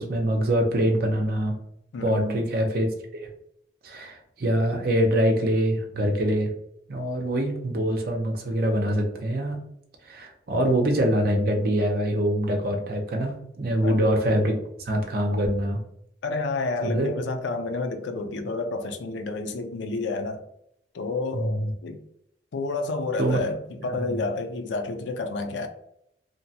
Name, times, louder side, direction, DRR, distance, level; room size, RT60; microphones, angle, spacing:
voice 1, 0.0-1.6 2.0-2.9 3.2-3.3 3.8-6.5 6.9-9.6 10.1-15.8 16.8-17.1 21.3-21.7 23.2-23.4 23.9-24.2, equal, 55° right, 0.6 m, -24 dB
voice 2, 1.9-2.4 13.8-14.0 16.2-20.4 20.9-22.0 22.5-25.7, left 3 dB, 90° left, 0.4 m, -30 dB
2.8 x 2.2 x 2.7 m
head